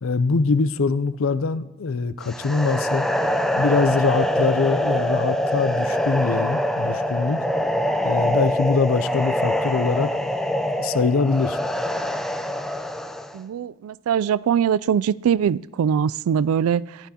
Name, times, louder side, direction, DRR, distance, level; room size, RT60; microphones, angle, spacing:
voice 1, 0.0-3.1 3.6-7.4 8.0-10.1 10.8-11.6, left 4 dB, 70° left, 14 dB, 0.5 m, -23 dB
sound 1, 2.2-13.4, equal, ahead, 0.4 m, -24 dB
voice 2, 13.3-16.8, right 8 dB, 90° right, 19 dB, 0.3 m, -22 dB
15.0 x 10.5 x 2.8 m, 1.1 s
head